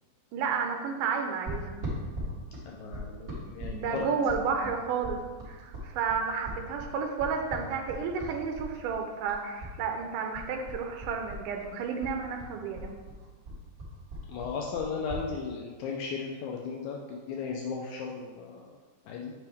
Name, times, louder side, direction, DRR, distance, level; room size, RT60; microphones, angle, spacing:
voice 1, 0.3-1.8 3.6-5.2 5.5-12.9, right 5 dB, 80° right, 3 dB, 2.1 m, -31 dB
sound 1, 1.5-9.8 10.0-11.7 12.0-15.3, equal, 35° right, 1.7 m, -39 dB
voice 2, 2.7-4.1 14.3-18.7 19.1-19.3, left 5 dB, 85° left, 0 dB, 1.6 m, -36 dB
7.5 x 5.3 x 3.5 m, 1.4 s
omnidirectional pair, 4.0 m